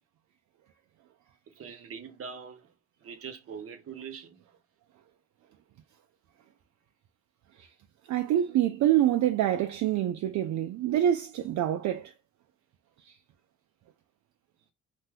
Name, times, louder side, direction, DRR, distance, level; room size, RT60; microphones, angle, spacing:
voice 1, 1.6-2.7 3.0-4.4 8.5-8.6, right 6 dB, 50° right, 0.9 m, -42 dB
voice 2, 8.1-12.1 13.1-13.2, right 11 dB, 70° right, 0.4 m, -26 dB
2.7 x 2.2 x 3.3 m
cardioid pair, 90°, 30 cm